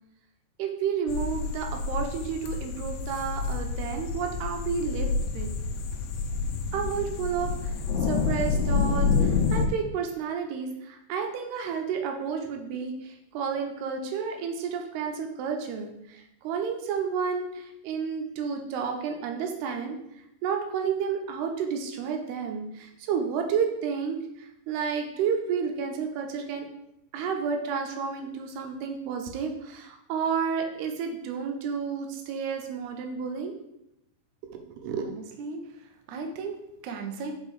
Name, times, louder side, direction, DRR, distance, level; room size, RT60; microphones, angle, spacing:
voice 1, 0.6-5.5 6.7-7.7 8.0-20.0 20.4-26.7 27.1-33.5 34.4-35.0, right 6 dB, 90° right, 4 dB, 3.0 m, -31 dB
sound 1, 1.1-9.7, left 5 dB, 75° left, 2.4 m, -28 dB
voice 2, 35.0-37.3, right 4 dB, 75° right, 4 dB, 1.8 m, -37 dB
6.0 x 5.6 x 4.9 m, 0.82 s
omnidirectional pair, 4.5 m